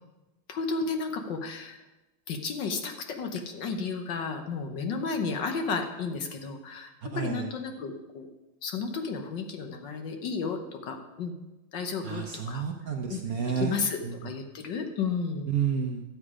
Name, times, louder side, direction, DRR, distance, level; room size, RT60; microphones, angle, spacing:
voice 1, 0.5-1.8 2.3-8.3 8.6-11.3 11.7-12.7 13.1-13.2 13.6-15.5, left 4 dB, 65° left, 5 dB, 1.6 m, -33 dB
voice 2, 7.1-7.5 12.0-14.1 15.5-16.0, right 7 dB, 60° right, 3 dB, 1.0 m, -31 dB
12.5 x 7.9 x 4.9 m, 1.0 s
omnidirectional pair, 2.3 m